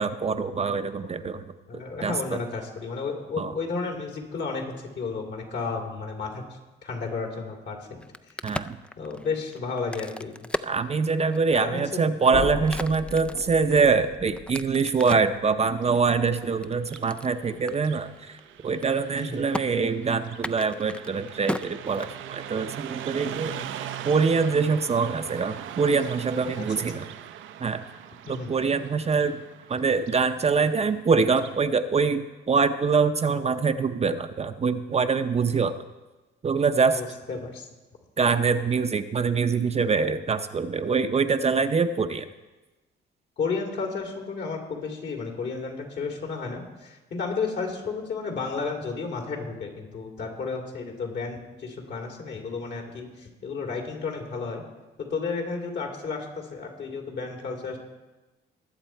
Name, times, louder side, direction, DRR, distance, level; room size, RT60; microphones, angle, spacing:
voice 1, 0.0-1.4 1.7-2.4 3.4-3.5 8.4-8.8 10.6-18.4 18.6-27.1 27.6-27.8 28.3-29.4 29.7-35.8 36.4-37.0 38.2-42.3, right 5 dB, 30° right, 8 dB, 0.6 m, -24 dB
voice 2, 1.7-6.4 6.8-8.0 9.0-10.3 11.5-12.0 19.2-19.4 23.4-23.7 26.5-26.6 26.9-27.0 28.3-28.5 36.9-37.7 43.4-54.6 55.0-57.8, left 4 dB, 60° left, 1 dB, 2.8 m, -32 dB
Crack, 7.9-11.6 12.1-15.4 15.9-17.3 17.7-17.8 18.1-18.4 18.7-19.2 19.5-19.6 20.3-22.5, left 1 dB, 5° left, 0.3 m, -36 dB
sound 1, 12.3-18.2, left 4 dB, 35° left, 0.7 m, -39 dB
Car passing by, 15.7-31.6, right 10 dB, 80° right, 0.6 m, -41 dB
20.5 x 7.4 x 4.5 m, 1.1 s
cardioid pair, 90°, 20 cm